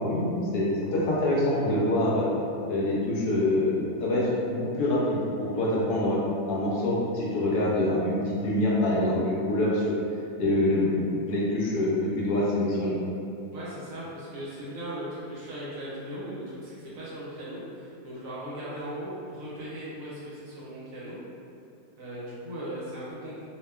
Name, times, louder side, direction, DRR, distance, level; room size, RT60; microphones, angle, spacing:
voice 1, 0.0-2.3 2.7-6.2 6.5-10.0 10.4-13.0, left 1 dB, 80° left, -5 dB, 1.2 m, -25 dB
voice 2, 13.5-21.2 22.0-23.5, right 1 dB, 65° right, -8 dB, 0.9 m, -38 dB
2.7 x 2.2 x 2.2 m, 2.5 s
omnidirectional pair, 1.7 m